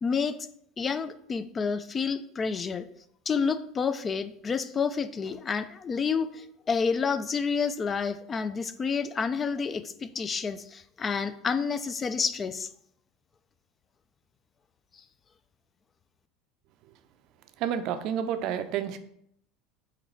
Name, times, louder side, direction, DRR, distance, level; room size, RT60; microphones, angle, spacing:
voice 1, 0.0-0.4 0.8-2.8 3.3-12.7, left 5 dB, 30° left, 12 dB, 0.3 m, -29 dB
voice 2, 17.6-19.0, right 9 dB, 60° right, 10 dB, 0.4 m, -29 dB
4.2 x 3.8 x 3.1 m, 0.71 s
hypercardioid pair, 95°, 0 cm